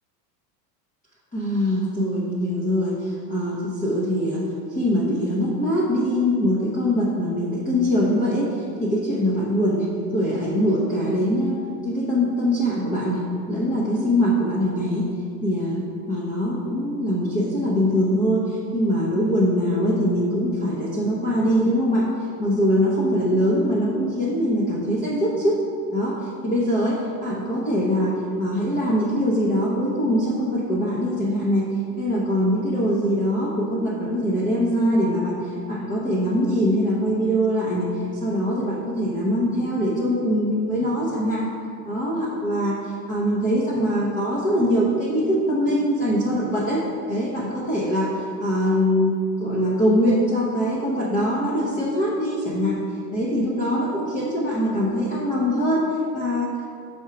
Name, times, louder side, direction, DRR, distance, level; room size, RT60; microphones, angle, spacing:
voice 1, 1.3-4.4 4.7-15.1 15.4-15.8 16.1-25.6 25.9-31.7 32.0-41.5 41.8-52.8 53.1-56.7, equal, 15° left, -6 dB, 0.7 m, -23 dB
4.7 x 4.4 x 5.8 m, 2.3 s
supercardioid pair, 130°, 50 cm